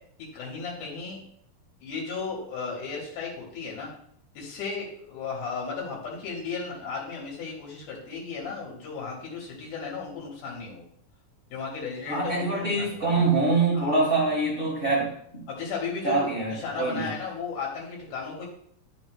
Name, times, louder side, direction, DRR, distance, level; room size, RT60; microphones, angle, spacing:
voice 1, 0.2-1.2 1.8-3.9 4.3-10.8 11.5-13.0 13.7-13.9 15.5-18.5, left 5 dB, 85° left, -3 dB, 2.7 m, -35 dB
voice 2, 12.1-15.4 16.0-17.1, right 3 dB, 45° right, -5 dB, 0.7 m, -25 dB
9.2 x 5.2 x 2.2 m, 0.66 s
omnidirectional pair, 3.5 m